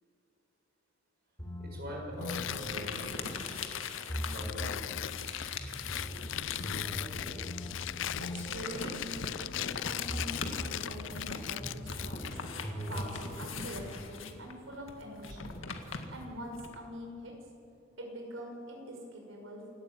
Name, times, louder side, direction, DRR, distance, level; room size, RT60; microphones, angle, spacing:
sound 1, 1.4-3.6 4.1-4.9 5.6-9.7 10.1-10.9 11.6-13.4, equal, 15° left, 5.5 m, -41 dB
voice 1, 1.6-3.7 4.2-4.8, left 1 dB, 55° right, -1 dB, 6.8 m, -43 dB
Tearing, 2.2-12.4, left 12 dB, 70° left, 0.4 m, -39 dB
sound 2, 2.3-7.4 7.7-16.8, left 4 dB, 85° left, 1.9 m, -42 dB
voice 2, 8.2-12.3 12.9-15.5 16.1-17.4 18.0-19.7, equal, 80° right, 1 dB, 6.0 m, -44 dB
28.0 x 12.5 x 9.1 m, 2.5 s
head